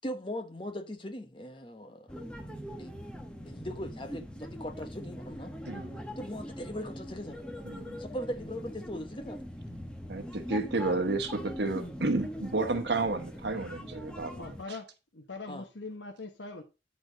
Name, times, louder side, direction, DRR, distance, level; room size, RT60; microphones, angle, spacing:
voice 1, 0.0-2.1 2.8-2.9 3.4-5.5 6.2-7.4 8.0-9.5 15.5-15.7, equal, 25° left, 1.1 m, -39 dB
sound 1, 2.1-14.6, equal, 5° left, 1.0 m, -42 dB
voice 2, 5.7-6.0 7.6-8.0 10.1-14.8, right 3 dB, 70° right, 1.1 m, -31 dB
voice 3, 14.4-14.9 15.1-16.6, left 3 dB, 80° left, 1.1 m, -41 dB
9.2 x 4.3 x 5.0 m
head